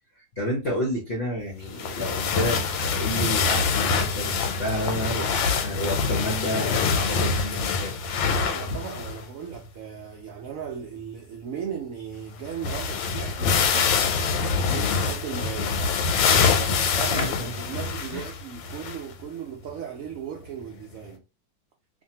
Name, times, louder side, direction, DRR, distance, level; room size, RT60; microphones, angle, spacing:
voice 1, 0.2-8.0 8.7-8.8 17.1-17.5 18.1-18.3, equal, 55° left, 0.7 m, -30 dB
sound 1, 1.8-9.3 9.5-9.6 12.1-12.2 12.4-19.1 19.7-19.8 20.9-21.0, left 5 dB, 90° left, 1.3 m, -25 dB
voice 2, 8.2-14.0 14.7-15.7 16.3-21.2, right 8 dB, 75° right, 0.7 m, -37 dB
2.6 x 2.5 x 2.8 m
omnidirectional pair, 2.0 m